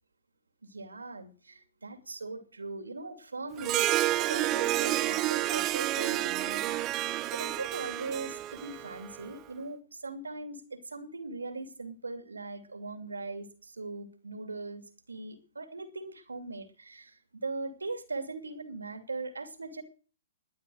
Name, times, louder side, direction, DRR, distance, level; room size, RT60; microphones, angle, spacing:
voice 1, 0.7-3.9 4.3-6.8 7.3-14.8 15.1-17.2 17.4-19.8, right 3 dB, 90° right, 2.7 m, -40 dB
Harp, 3.6-9.3, right 15 dB, 30° right, 0.8 m, -30 dB
20.0 x 10.5 x 6.4 m
hypercardioid pair, 120°, 0 cm